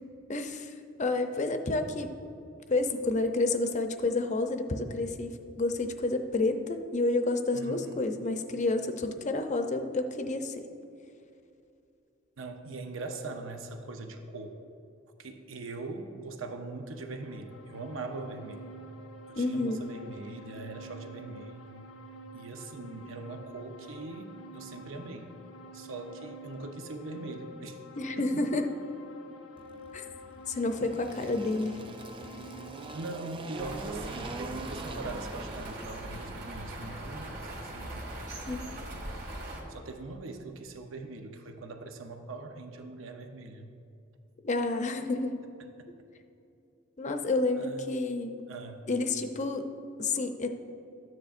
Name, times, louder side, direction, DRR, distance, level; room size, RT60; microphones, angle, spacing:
voice 1, 0.3-0.7 1.0-2.1 2.7-10.6 19.4-19.8 28.0-28.6 29.9-30.0 30.5-31.8 38.5-38.7 44.4-45.4 47.0-48.4 48.9-49.7 50.0-50.5, left 2 dB, 40° left, 6 dB, 0.6 m, -29 dB
voice 2, 7.5-8.0 12.4-14.6 15.2-18.7 19.3-21.9 22.3-25.4 25.7-27.8 28.2-28.4 32.9-38.1 39.7-43.7 47.6-47.9 48.5-48.8, right 3 dB, 80° right, 5 dB, 0.7 m, -41 dB
sound 1, 16.8-33.1, right 1 dB, 85° left, 0.7 m, -48 dB
Engine, 29.6-37.0, right 3 dB, 25° right, 0.5 m, -43 dB
sound 2, 33.6-39.6, right 1 dB, 55° right, 2.1 m, -41 dB
13.5 x 9.5 x 2.5 m, 2.6 s
head